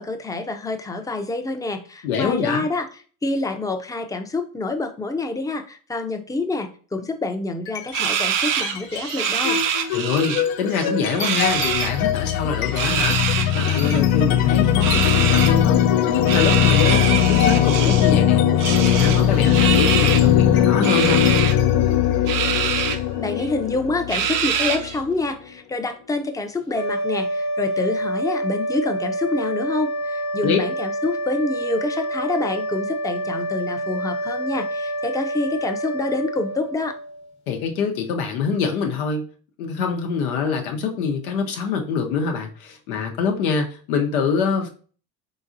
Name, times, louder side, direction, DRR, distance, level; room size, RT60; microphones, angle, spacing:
voice 1, 0.0-2.9 3.2-9.6 23.2-37.0, left 2 dB, 10° left, 6 dB, 0.6 m, -27 dB
voice 2, 2.0-2.6 9.9-18.4 18.8-21.3 30.4-30.6 37.5-39.2 39.6-44.7, left 6 dB, 90° left, 3 dB, 0.9 m, -25 dB
sound 1, 7.7-8.2 8.5-25.1, left 10 dB, 60° left, 0.6 m, -20 dB
sound 2, 7.9-10.4 10.7-11.9 12.6-14.0 14.8-15.5 16.3-18.1 18.6-20.3 20.8-21.5 22.3-23.0 23.4-23.5 24.1-25.0, right 9 dB, 50° right, 0.6 m, -25 dB
sound 3, 26.7-37.3, right 1 dB, 40° left, 1.0 m, -27 dB
3.9 x 3.8 x 2.6 m, 0.41 s
supercardioid pair, 75°, 41 cm